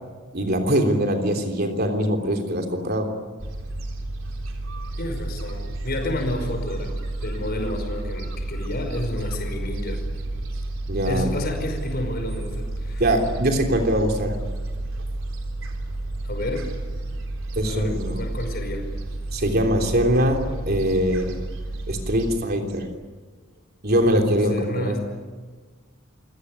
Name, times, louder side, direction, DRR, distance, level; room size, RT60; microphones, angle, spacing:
voice 1, 0.3-3.1 10.9-11.3 13.0-14.4 17.6-18.2 19.3-21.4 21.9-22.9 23.8-25.0, equal, 50° right, 4 dB, 3.4 m, -22 dB
Gull seagull, 3.4-22.3, right 1 dB, 80° right, 3.9 m, -31 dB
voice 2, 5.0-6.9 7.2-10.0 11.1-13.0 16.2-16.7 17.6-18.8 24.5-25.0, left 1 dB, 50° left, 5 dB, 5.2 m, -30 dB
28.0 x 18.0 x 9.9 m, 1.4 s
head